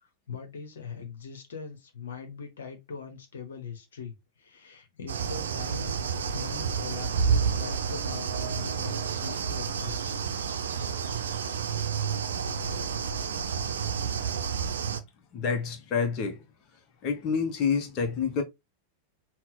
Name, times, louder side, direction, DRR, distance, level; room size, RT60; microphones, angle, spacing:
voice 1, 0.0-5.9 6.3-10.1, left 5 dB, 65° left, 1.1 m, -41 dB
sound 1, 5.1-15.0, right 6 dB, 65° right, 0.6 m, -30 dB
voice 2, 15.3-16.4 17.0-18.4, left 6 dB, 35° left, 1.0 m, -28 dB
5.8 x 2.3 x 3.8 m
figure-of-eight pair, 90°, 0 cm